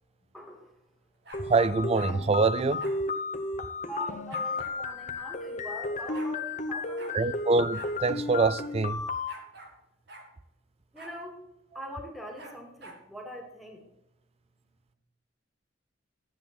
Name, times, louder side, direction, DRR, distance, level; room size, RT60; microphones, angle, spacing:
voice 1, 0.3-0.7 3.9-7.4 10.9-11.4 11.7-13.8, equal, ahead, 2.3 m, -42 dB
sound 1, 1.2-2.2 2.8-3.0 4.3-4.8 5.7-5.8 5.9-6.3 7.0-7.2 7.7-7.9 8.2-8.3 9.3-9.8 10.1-10.3 11.0-11.2 12.4-13.0, right 2 dB, 60° right, 2.3 m, -48 dB
sound 2, 1.3-9.3, left 3 dB, 40° left, 1.0 m, -33 dB
voice 2, 1.5-2.9 7.1-9.0, right 3 dB, 30° right, 0.4 m, -25 dB
12.5 x 8.5 x 4.4 m
head